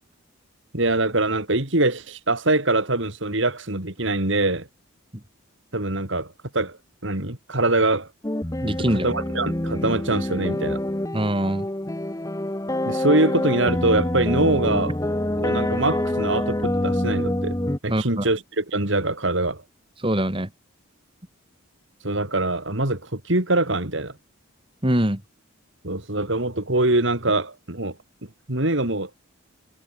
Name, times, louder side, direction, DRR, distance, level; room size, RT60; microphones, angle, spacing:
voice 1, 0.7-4.7 5.7-6.8 7.0-8.1 8.9-10.8 12.9-15.0 15.4-17.6 17.8-19.6 22.0-24.1 25.8-28.0 28.5-29.1, right 2 dB, 60° right, 3.0 m, -23 dB
sound 1, 8.2-17.8, left 1 dB, 15° left, 0.9 m, -26 dB
voice 2, 8.6-9.1 11.1-11.7 17.9-18.2 20.0-20.5 24.8-25.2, right 1 dB, 25° right, 2.9 m, -23 dB
head